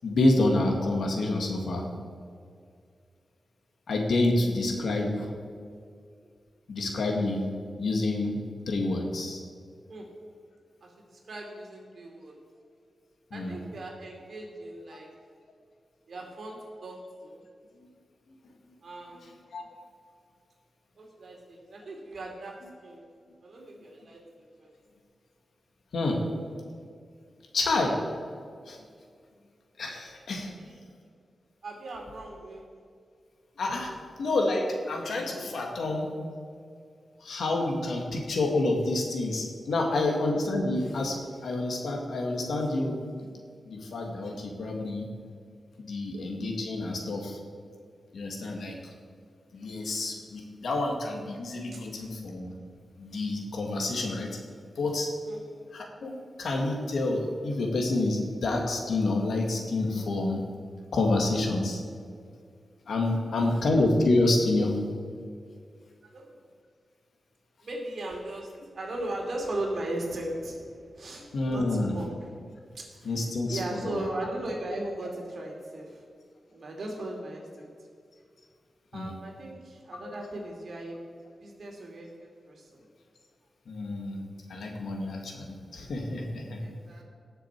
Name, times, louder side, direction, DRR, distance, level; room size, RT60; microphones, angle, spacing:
voice 1, 0.0-1.9 3.9-5.3 6.7-7.5 7.8-8.4 8.7-9.4 13.3-13.6 19.2-19.6 25.9-26.2 27.5-28.0 28.7-28.8 29.8-30.5 33.6-33.9 34.2-36.1 37.2-41.2 41.4-43.3 43.7-45.1 45.8-47.4 48.1-48.8 49.5-52.6 53.0-54.4 54.8-55.1 55.7-60.4 60.9-61.8 62.9-64.7 71.3-71.9 73.0-74.0 78.9-79.1 80.0-80.1 83.7-84.2 84.5-86.6, left 2 dB, 80° left, 1 dB, 1.9 m, -28 dB
voice 2, 10.8-12.4 13.3-15.1 16.1-17.4 18.8-19.2 21.0-22.6 22.8-23.0 23.4-24.7 26.0-26.5 30.6-30.8 31.6-32.6 39.9-40.0 51.7-52.1 55.2-55.4 63.1-63.6 66.0-66.4 67.6-72.1 72.9-73.1 73.5-76.1 76.5-77.7 78.9-81.0 81.4-82.8 86.6-87.0, right 1 dB, 60° right, 0 dB, 2.8 m, -38 dB
18.0 x 6.8 x 4.6 m, 2.2 s
wide cardioid pair, 115°, 0 cm